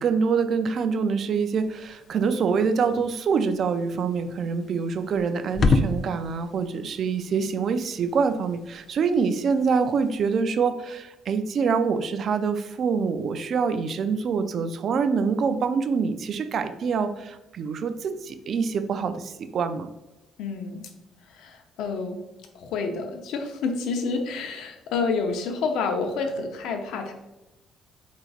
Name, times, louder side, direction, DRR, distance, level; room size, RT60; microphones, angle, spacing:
voice 1, 0.0-19.9, right 5 dB, 45° right, 10 dB, 0.3 m, -25 dB
sound 1, 1.5-10.4, left 3 dB, 35° left, 0.3 m, -32 dB
voice 2, 20.4-20.9 21.2-22.2 22.5-27.1, left 4 dB, 85° left, 4 dB, 0.7 m, -29 dB
4.5 x 3.9 x 2.4 m, 1.0 s
cardioid pair, 145°, 0 cm